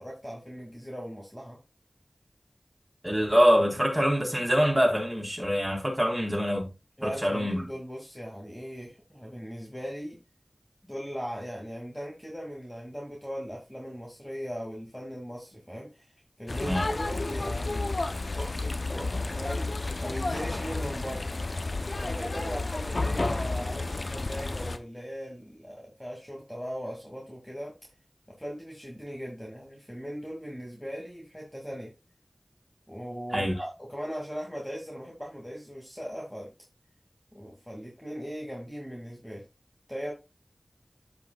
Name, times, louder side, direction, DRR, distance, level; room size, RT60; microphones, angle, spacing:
voice 1, 0.0-1.6 7.0-10.2 10.8-16.1 16.4-17.9 18.4-19.7 20.0-21.2 21.9-27.7 28.4-31.9 32.9-36.5 37.3-39.4 39.9-40.1, equal, 5° left, 2.2 m, -39 dB
voice 2, 3.0-6.7 7.0-7.6 16.6-16.9 33.3-33.6, equal, 15° right, 4.0 m, -24 dB
sound 1, 16.5-24.8, left 2 dB, 70° left, 0.7 m, -31 dB
13.5 x 5.3 x 2.3 m
wide cardioid pair, 50°, 0 cm